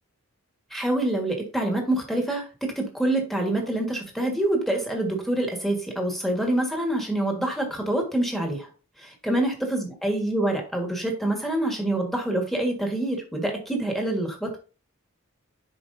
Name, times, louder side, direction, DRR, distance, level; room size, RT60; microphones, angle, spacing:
voice 1, 0.7-8.7 9.0-14.5, right 1 dB, ahead, 1 dB, 1.5 m, -26 dB
10.5 x 4.7 x 2.6 m, 0.35 s
head